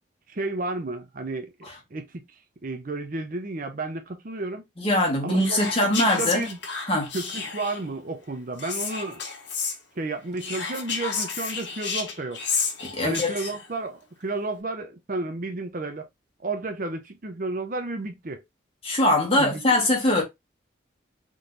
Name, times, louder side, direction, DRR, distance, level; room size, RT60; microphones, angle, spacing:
voice 1, 0.3-1.5 1.9-2.1 2.6-4.7 5.2-6.6 7.1-9.2 10.0-12.4 13.0-16.1 16.4-18.4 19.4-19.7, right 2 dB, 45° right, 0.6 m, -32 dB
voice 2, 4.8-6.5 6.9-7.1 12.8-13.3 18.8-20.2, left 1 dB, 30° left, 1.6 m, -22 dB
Whispering, 5.4-7.9 8.6-9.8 10.4-13.7, left 5 dB, 60° left, 1.3 m, -31 dB
3.8 x 3.1 x 3.9 m
head